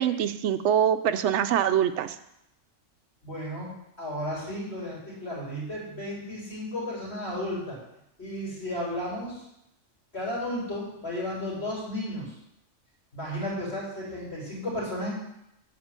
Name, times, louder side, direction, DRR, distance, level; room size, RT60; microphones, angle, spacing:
voice 1, 0.0-2.2, right 9 dB, 70° right, 11 dB, 0.9 m, -24 dB
voice 2, 3.2-3.7 4.0-7.8 8.2-9.4 10.1-12.3 13.1-15.1, left 1 dB, 55° left, -5 dB, 4.5 m, -33 dB
9.6 x 4.4 x 7.3 m, 0.80 s
omnidirectional pair, 1.3 m